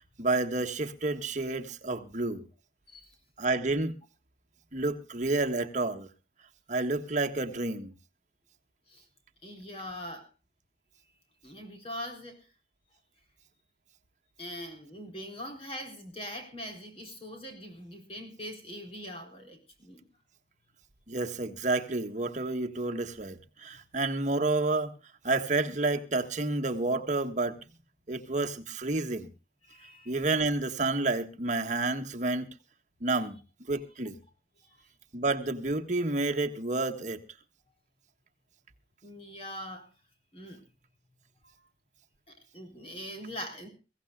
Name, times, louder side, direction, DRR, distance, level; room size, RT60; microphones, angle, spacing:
voice 1, 0.2-2.4 3.4-4.0 4.7-6.1 6.7-7.9 21.1-24.9 25.2-27.6 28.1-29.3 30.1-32.5 33.0-33.4 33.7-34.1 35.1-37.2, right 2 dB, 45° right, 1.5 m, -30 dB
voice 2, 9.4-10.3 11.4-12.4 14.4-20.0 29.6-30.4 34.6-34.9 39.0-39.8 40.3-40.6 42.3-43.7, equal, 35° left, 4.1 m, -42 dB
23.5 x 16.5 x 2.4 m
head